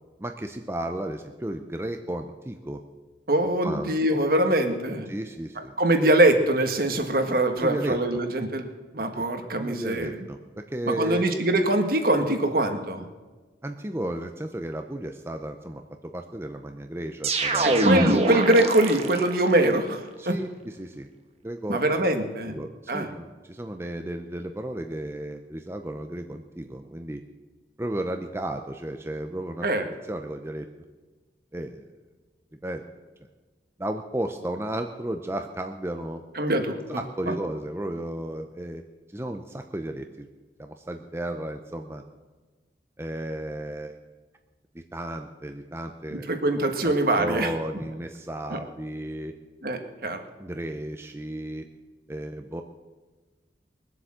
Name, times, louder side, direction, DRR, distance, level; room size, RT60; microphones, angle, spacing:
voice 1, 0.2-2.8 3.6-4.2 5.1-5.7 7.6-8.0 9.1-9.3 9.6-11.3 13.6-18.0 20.2-21.1 21.4-21.8 22.4-27.2 27.8-29.7 30.0-30.7 31.5-31.9 32.6-32.8 33.8-36.2 36.9-38.8 39.1-40.3 40.6-42.0 43.0-44.0 44.7-46.3 46.8-49.3 50.4-51.6 52.1-52.6, right 1 dB, 15° right, 5 dB, 0.7 m, -34 dB
voice 2, 3.3-5.1 5.8-8.6 8.9-10.1 10.9-13.1 17.6-20.4 21.7-22.6 22.9-23.1 29.6-29.8 36.3-37.0 37.3-37.4 46.3-47.5 48.5-48.6 49.6-50.2, right 1 dB, 55° right, 6 dB, 1.6 m, -23 dB
sound 1, 17.2-19.5, right 2 dB, 35° right, 1.3 m, -23 dB
21.5 x 8.1 x 7.6 m, 1.3 s
head